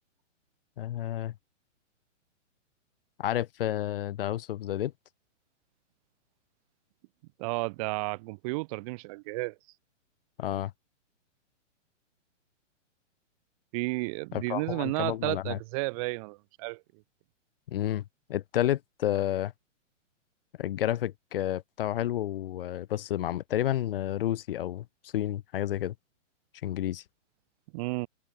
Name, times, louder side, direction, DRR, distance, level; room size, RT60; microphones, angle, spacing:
voice 1, 0.8-1.3 3.2-4.9 10.4-10.7 14.3-15.6 17.7-18.0 18.3-19.5 20.6-25.9 26.6-27.0, left 12 dB, 45° left, 1.8 m, -30 dB
voice 2, 7.4-9.6 13.7-16.8 27.7-28.1, right 26 dB, 30° right, 2.0 m, -32 dB
hypercardioid pair, 165°, 38 cm